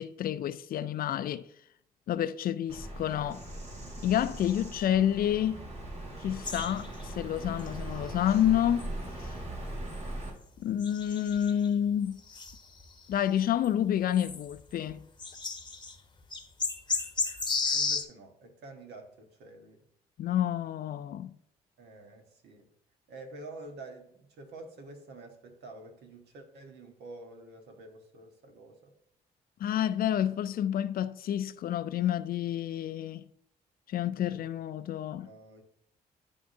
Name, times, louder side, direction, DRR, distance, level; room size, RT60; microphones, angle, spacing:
voice 1, 0.0-1.5 2.1-3.4 4.0-5.6 6.2-8.9 9.2-9.3 10.6-12.2 13.1-15.0 20.2-21.3 29.6-33.2 33.9-35.3, left 10 dB, 60° left, 0.4 m, -29 dB
Bird vocalization bird call bird song, 2.7-10.3, right 1 dB, 40° right, 2.1 m, -40 dB
sound 1, 6.4-7.2 7.6-7.7 8.3-8.4 8.8-8.9 9.7-9.8 10.8-11.7 12.3-13.1 13.6-13.7 14.1-14.5 14.9-15.0 15.2-15.9 16.3-18.0, left 4 dB, 25° left, 0.9 m, -33 dB
voice 2, 17.7-19.9 21.8-22.7 23.1-28.9 34.2-34.4 35.2-35.6, right 2 dB, 75° right, 1.3 m, -48 dB
10.5 x 3.5 x 2.7 m
supercardioid pair, 60°, 17 cm